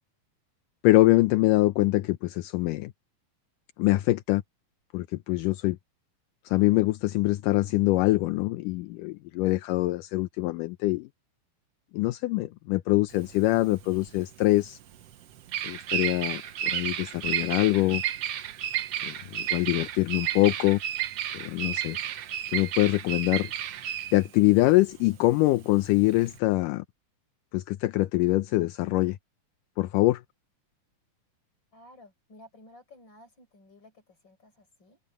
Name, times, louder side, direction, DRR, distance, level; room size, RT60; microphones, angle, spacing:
voice 1, 0.8-2.9 3.8-4.4 4.9-5.8 6.5-11.1 11.9-14.8 15.6-18.0 19.0-20.8 21.3-22.0 22.5-23.5 24.1-26.9 27.5-29.2 29.8-30.2, left 18 dB, 80° left, 2.2 m, -24 dB
Bird vocalization bird call bird song, 13.1-26.4, right 11 dB, 60° right, 1.7 m, -32 dB
voice 2, 31.7-35.0, left 1 dB, 30° left, 6.6 m, -54 dB
omnidirectional pair, 4.0 m